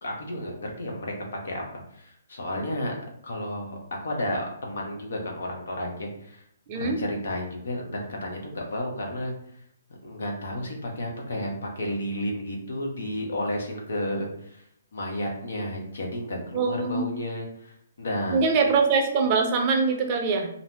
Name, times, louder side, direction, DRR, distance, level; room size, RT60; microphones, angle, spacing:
voice 1, 0.0-1.6 1.9-2.9 3.2-3.8 4.0-6.4 6.7-9.3 10.0-14.6 14.9-18.5, left 1 dB, 70° left, 0 dB, 0.9 m, -32 dB
voice 2, 6.7-7.0 16.5-17.1 18.3-20.5, right 4 dB, 35° right, 3 dB, 0.5 m, -23 dB
2.6 x 2.0 x 3.3 m, 0.69 s
hypercardioid pair, 145°, 0 cm